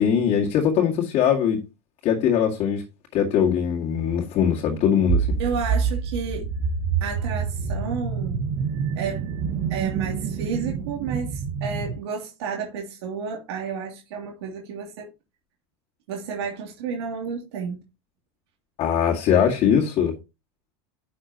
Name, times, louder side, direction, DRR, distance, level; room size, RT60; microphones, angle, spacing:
voice 1, 0.0-1.6 2.0-2.8 3.1-5.3 18.8-20.1, left 8 dB, 50° left, 2.2 m, -21 dB
sound 1, 5.1-12.0, right 6 dB, 55° right, 1.2 m, -27 dB
voice 2, 5.4-6.5 7.0-8.4 9.0-9.3 9.7-15.1 16.1-17.8, right 6 dB, 80° right, 2.8 m, -31 dB
10.5 x 6.5 x 2.9 m
supercardioid pair, 120°, 13 cm